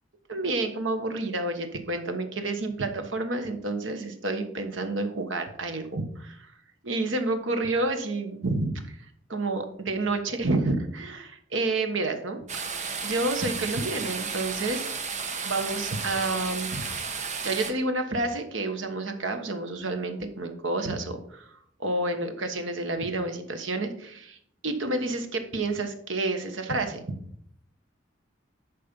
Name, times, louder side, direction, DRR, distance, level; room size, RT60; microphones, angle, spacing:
voice 1, 0.3-6.5 6.8-8.8 9.3-12.7 13.0-14.9 15.4-16.8 17.4-21.4 21.8-24.4 24.6-27.0, right 2 dB, 80° right, 6 dB, 1.3 m, -29 dB
sound 1, 12.5-17.7, right 5 dB, 40° right, 1.0 m, -33 dB
11.0 x 4.3 x 5.3 m, 0.66 s
head